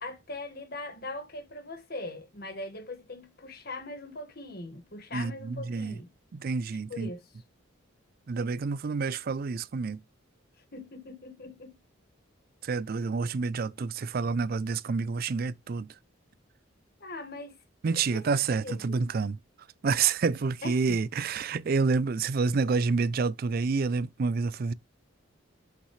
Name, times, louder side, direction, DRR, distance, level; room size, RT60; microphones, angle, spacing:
voice 1, 0.0-6.1 6.9-7.2 10.7-11.7 17.0-17.6 17.9-18.2 18.6-19.0 20.6-21.0, left 2 dB, 50° left, 1.7 m, -41 dB
voice 2, 5.1-6.0 6.3-7.1 8.3-10.0 12.6-15.9 17.8-19.4 19.8-24.7, right 4 dB, 50° right, 0.4 m, -28 dB
8.2 x 5.9 x 3.2 m
head